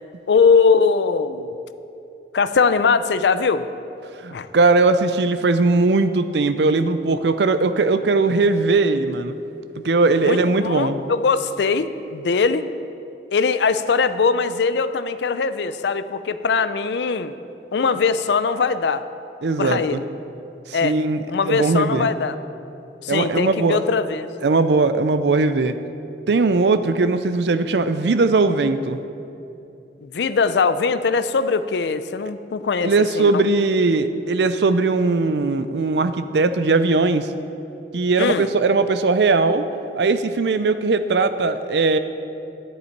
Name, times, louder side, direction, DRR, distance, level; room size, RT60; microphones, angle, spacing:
voice 1, 0.3-1.5 2.3-3.6 4.3-4.5 10.2-12.7 13.3-17.3 17.7-19.0 19.6-20.0 20.7-20.9 21.3-22.4 23.0-24.3 30.0-33.4 38.2-38.5, left 5 dB, 75° left, 12 dB, 0.4 m, -21 dB
voice 2, 4.2-9.3 9.8-11.0 19.4-20.0 20.7-22.1 23.1-23.8 24.4-25.8 26.3-29.0 32.8-37.3 37.9-39.7 40.0-42.0, right 3 dB, 70° right, 11 dB, 0.5 m, -19 dB
10.5 x 10.0 x 4.6 m, 2.7 s
head